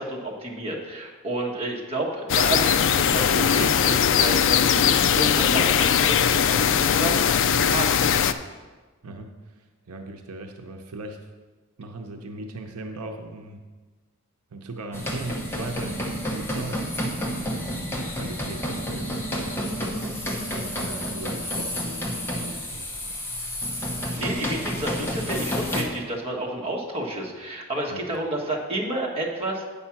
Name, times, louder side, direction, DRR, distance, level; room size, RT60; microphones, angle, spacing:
voice 1, 0.0-8.0 24.2-29.6, right 1 dB, 25° right, -2 dB, 1.4 m, -30 dB
sound 1, 2.3-8.3, left 8 dB, 55° left, 0.4 m, -20 dB
voice 2, 9.0-11.3 11.8-13.6 14.5-20.0 20.4-22.9 24.2-24.6 25.2-25.3 27.9-28.0, right 2 dB, 80° right, 4 dB, 0.7 m, -38 dB
sound 2, 14.9-25.8, equal, 10° left, 1.0 m, -30 dB
8.6 x 5.5 x 5.8 m, 1.3 s
head